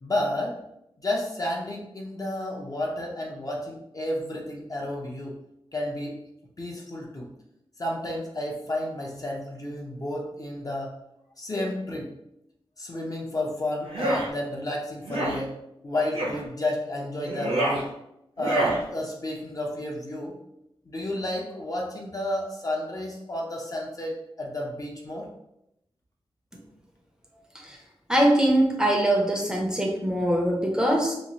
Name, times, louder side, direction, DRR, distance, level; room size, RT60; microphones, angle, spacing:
voice 1, 0.0-0.6 1.0-5.3 5.7-6.2 6.6-7.3 7.8-10.9 11.4-12.1 12.8-15.5 15.8-17.9 18.4-20.4 20.9-25.3, left 1 dB, 35° left, -1 dB, 0.6 m, -31 dB
sound 1, 13.8-14.3 15.0-15.4 16.1-16.4 17.2-17.8 18.4-18.8, right 1 dB, 75° right, 0.7 m, -26 dB
voice 2, 28.1-31.1, right 1 dB, 5° right, -1 dB, 0.5 m, -22 dB
3.0 x 2.3 x 2.7 m, 0.82 s
wide cardioid pair, 95°, 10 cm